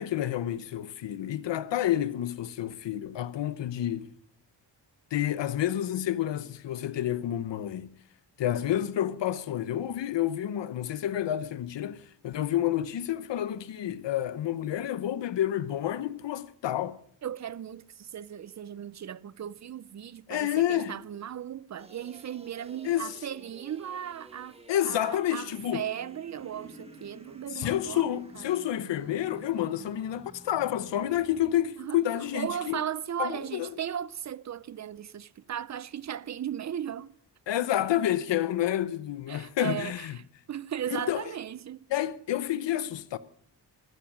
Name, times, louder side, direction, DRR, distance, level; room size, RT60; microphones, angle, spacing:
voice 1, 0.0-4.1 5.1-8.0 8.4-17.0 20.3-21.0 22.8-23.2 24.7-25.8 27.5-32.8 33.2-33.8 37.5-40.2 41.1-41.3 41.9-43.2, left 12 dB, 80° left, 0.8 m, -29 dB
voice 2, 17.2-24.6 24.9-28.4 31.8-32.0 32.3-37.2 39.3-40.2 40.5-41.9, right 9 dB, 40° right, 0.5 m, -37 dB
sound 1, 21.8-31.5, right 2 dB, 15° right, 1.4 m, -52 dB
sound 2, 26.3-27.7 28.3-29.2, equal, 40° left, 3.8 m, -53 dB
14.0 x 12.5 x 6.2 m
wide cardioid pair, 130°, 43 cm